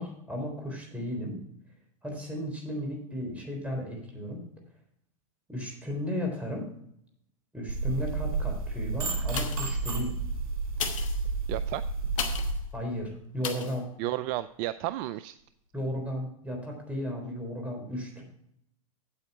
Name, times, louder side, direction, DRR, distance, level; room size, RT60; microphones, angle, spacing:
voice 1, 0.0-1.4 2.0-4.4 5.5-6.7 7.5-10.2 12.7-13.9 15.7-18.2, equal, 10° right, 1 dB, 3.8 m, -34 dB
sound 1, 7.7-12.5, right 3 dB, 85° right, 2.6 m, -31 dB
sound 2, 9.3-9.8 10.7-12.6 13.4-13.8 14.3-14.4, left 7 dB, 70° left, 1.4 m, -36 dB
voice 2, 11.5-11.8 14.0-15.3, right 15 dB, 45° right, 14 dB, 0.4 m, -32 dB
8.5 x 8.4 x 4.7 m, 0.72 s
hypercardioid pair, 105°, 18 cm